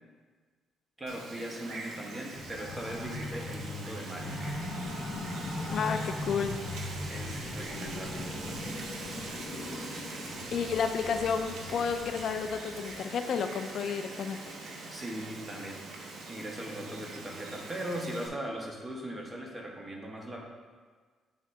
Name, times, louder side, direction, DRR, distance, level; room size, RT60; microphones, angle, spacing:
voice 1, 1.0-4.4 7.1-8.9 14.9-15.8 16.3-20.4, right 1 dB, 20° right, -1 dB, 1.2 m, -39 dB
Wind, 1.1-18.3, right 3 dB, 70° right, 0.9 m, -43 dB
sound 1, 2.4-12.9, left 2 dB, 40° left, 1.5 m, -39 dB
voice 2, 5.7-6.6 10.5-14.6, left 6 dB, 65° left, 7 dB, 0.4 m, -31 dB
8.8 x 3.7 x 3.4 m, 1.5 s
cardioid pair, 90°, 0 cm